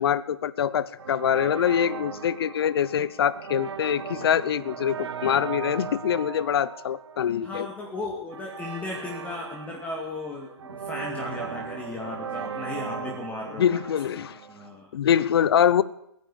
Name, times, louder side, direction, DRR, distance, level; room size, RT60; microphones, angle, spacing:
voice 1, 0.0-7.7 13.6-14.4 14.9-15.8, left 9 dB, 60° left, 18 dB, 1.0 m, -24 dB
sound 1, 1.0-14.8, right 7 dB, 70° right, 1.2 m, -38 dB
voice 2, 7.4-13.8 14.2-14.9, left 2 dB, 10° left, -1 dB, 2.4 m, -36 dB
21.0 x 9.5 x 7.2 m, 0.76 s
hypercardioid pair, 140°, 15 cm